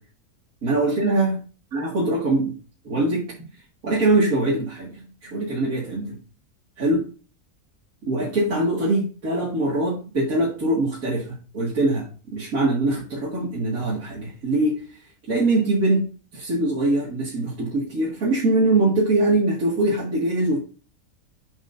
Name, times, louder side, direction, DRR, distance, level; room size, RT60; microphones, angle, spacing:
voice 1, 0.6-1.3 1.7-2.5 2.8-3.3 3.8-6.2 6.8-7.0 8.1-14.8 15.3-16.0 16.3-20.6, right 2 dB, 70° right, -5 dB, 2.5 m, -22 dB
7.9 x 7.8 x 2.6 m, 0.36 s
omnidirectional pair, 1.5 m